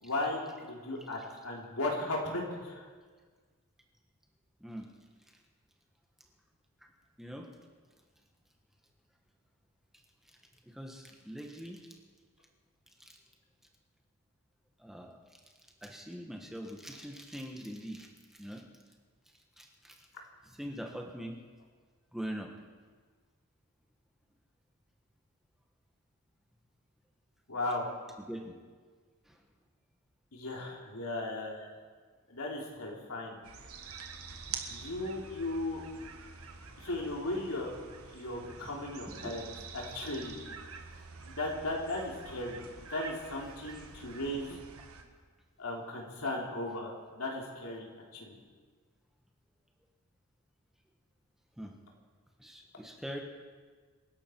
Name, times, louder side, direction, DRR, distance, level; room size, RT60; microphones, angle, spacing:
voice 1, 0.0-2.8 27.5-27.9 30.3-31.8 32.3-33.4 34.7-35.8 36.8-37.7 38.1-40.4 41.2-42.6 42.9-44.6 45.6-48.3, left 2 dB, 85° left, -1 dB, 3.3 m, -36 dB
voice 2, 7.2-7.5 10.6-11.9 13.0-13.1 14.8-15.1 15.8-18.6 19.6-20.1 20.5-21.4 22.1-22.5 28.3-28.6 29.3-29.4 38.6-39.3 51.6-51.7 52.4-53.2, equal, ahead, 1 dB, 1.3 m, -43 dB
sound 1, 33.4-45.0, right 5 dB, 75° right, 1.6 m, -47 dB
27.0 x 11.5 x 4.6 m, 1.5 s
head